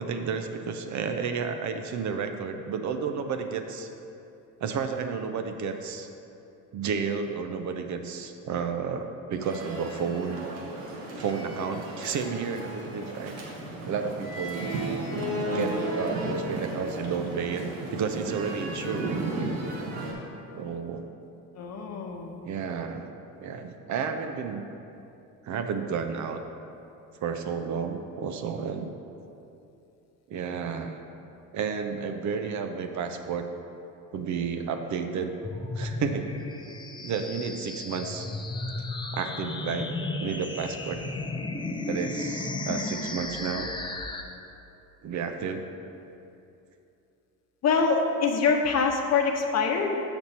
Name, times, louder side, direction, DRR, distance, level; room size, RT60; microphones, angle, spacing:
voice 1, 0.0-3.9 4.6-6.1 6.7-10.5 11.2-13.3 13.9-14.7 15.5-19.5 20.6-21.0 22.4-23.1 23.4-24.6 25.4-26.4 27.2-28.9 30.3-31.0 31.5-33.5 34.1-35.3 35.8-36.3 37.0-38.3 39.1-39.9 40.2-41.0 41.8-43.7 45.0-45.6, right 6 dB, 45° right, 6 dB, 0.6 m, -31 dB
sound 1, 9.4-20.1, right 1 dB, 85° right, 1.4 m, -34 dB
voice 2, 15.5-15.9 21.6-22.3 47.6-50.0, left 5 dB, 40° left, 3 dB, 0.9 m, -25 dB
sound 2, 35.4-44.2, left 2 dB, 10° left, 0.5 m, -34 dB
6.6 x 6.1 x 4.2 m, 2.7 s
supercardioid pair, 80°, 39 cm